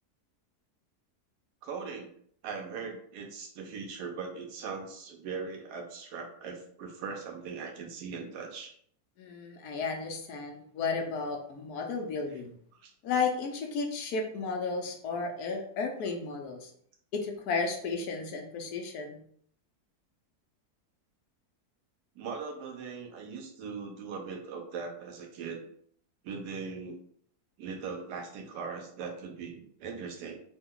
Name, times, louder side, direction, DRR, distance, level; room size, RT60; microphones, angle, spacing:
voice 1, 1.6-2.1 2.4-8.7 12.8-12.9 22.1-25.6 26.2-27.0 27.6-30.4, right 5 dB, 90° right, 3 dB, 1.3 m, -40 dB
voice 2, 9.2-12.5 13.0-16.7 17.1-19.2, left 4 dB, 75° left, 3 dB, 1.2 m, -33 dB
3.4 x 2.2 x 3.6 m, 0.62 s
omnidirectional pair, 1.7 m